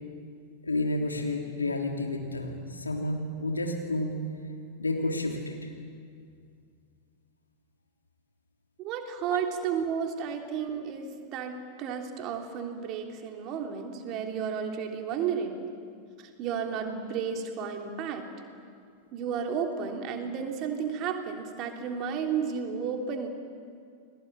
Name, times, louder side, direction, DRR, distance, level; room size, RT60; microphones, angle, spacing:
voice 1, 0.6-4.2 4.8-5.7 9.3-9.4, left 2 dB, 80° left, 2 dB, 3.3 m, -30 dB
voice 2, 8.8-15.7 16.2-18.3 19.1-23.3, right 7 dB, 40° right, 3 dB, 3.2 m, -32 dB
29.5 x 21.0 x 8.9 m, 2.2 s
figure-of-eight pair, 90°, 0 cm